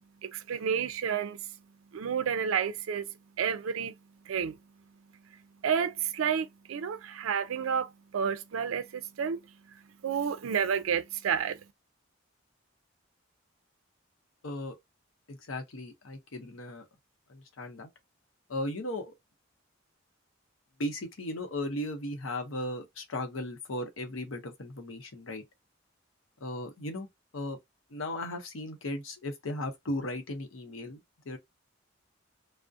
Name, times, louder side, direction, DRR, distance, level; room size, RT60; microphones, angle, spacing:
voice 1, 0.2-1.4 1.9-3.1 3.4-3.9 4.3-4.6 5.6-9.4 10.0-11.6, right 7 dB, 85° right, 0.4 m, -30 dB
voice 2, 14.4-14.8 15.3-16.8 17.3-17.9 18.5-19.1 20.8-25.4 26.4-27.1 27.3-27.6 27.9-31.0 31.2-31.4, left 1 dB, 80° left, 0.7 m, -36 dB
2.4 x 2.0 x 2.6 m
head